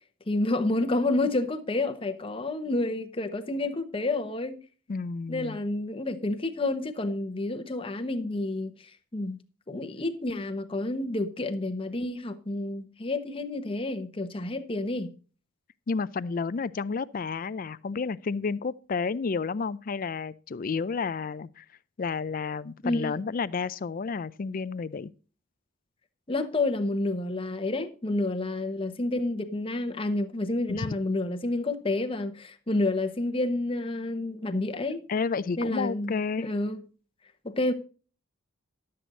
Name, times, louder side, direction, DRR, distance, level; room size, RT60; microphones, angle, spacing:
voice 1, 0.3-4.6 5.3-9.4 9.7-15.1 22.8-23.2 26.3-35.0 35.6-36.8 37.4-37.7, left 2 dB, 25° left, 0.9 m, -29 dB
voice 2, 4.9-5.6 15.9-21.6 22.0-25.1 30.7-30.9 35.1-36.5, left 5 dB, 40° left, 0.4 m, -31 dB
12.0 x 7.7 x 3.9 m
head